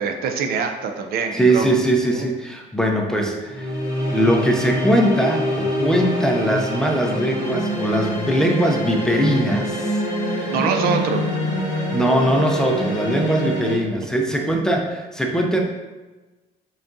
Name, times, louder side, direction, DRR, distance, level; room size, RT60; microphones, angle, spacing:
voice 1, 0.0-1.7 2.1-2.3 10.5-11.2, right 5 dB, 65° right, 5 dB, 0.4 m, -24 dB
voice 2, 1.3-3.8 4.1-10.0 10.3-10.6 11.9-15.6, right 1 dB, 5° left, 1 dB, 0.5 m, -21 dB
sound 1, 3.5-13.7, equal, 20° right, 1.3 m, -25 dB
3.8 x 3.4 x 2.6 m, 1.2 s
cardioid pair, 110°, 17 cm